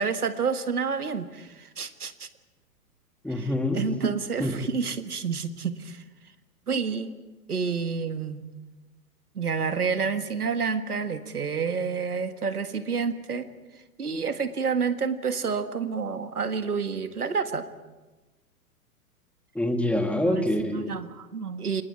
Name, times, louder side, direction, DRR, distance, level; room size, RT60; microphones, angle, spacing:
voice 1, 0.0-2.3 3.3-6.0 6.7-7.1 7.5-8.5 9.4-13.5 14.0-17.7 20.3-20.5 20.8-21.8, right 5 dB, 75° right, 9 dB, 1.8 m, -29 dB
voice 2, 3.2-3.9 4.4-4.5 19.5-20.9, left 1 dB, 5° left, 5 dB, 2.1 m, -25 dB
29.0 x 27.0 x 4.8 m, 1.1 s
figure-of-eight pair, 110°, 45 cm